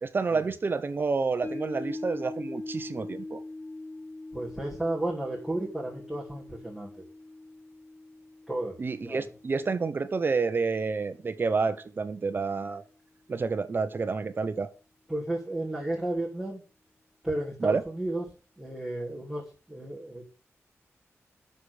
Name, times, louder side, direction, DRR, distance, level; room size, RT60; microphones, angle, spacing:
voice 1, 0.0-3.4 8.8-12.9 13.3-14.7 17.6-17.8, right 4 dB, 45° right, 1.0 m, -29 dB
sound 1, 1.4-11.8 12.2-12.3, left 2 dB, 40° left, 0.9 m, -42 dB
voice 2, 4.3-7.0 8.5-9.3 15.1-16.6 17.2-18.2 18.6-19.4 19.7-20.3, right 1 dB, ahead, 3.0 m, -33 dB
8.2 x 6.9 x 8.4 m
wide cardioid pair, 125°, 5 cm